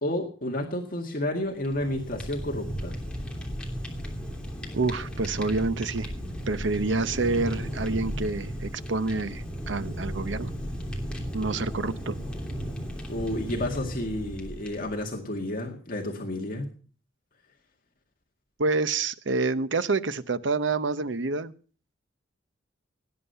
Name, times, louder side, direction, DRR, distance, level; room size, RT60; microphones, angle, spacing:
voice 1, 0.0-3.0 13.1-16.7, left 1 dB, 45° left, 1 dB, 2.0 m, -31 dB
Fire, 1.5-15.1, equal, 5° left, 3.0 m, -35 dB
voice 2, 4.7-6.1 6.5-10.5 11.3-12.2 18.6-21.5, right 3 dB, 75° right, 13 dB, 0.8 m, -27 dB
18.5 x 9.7 x 5.6 m, 0.41 s
head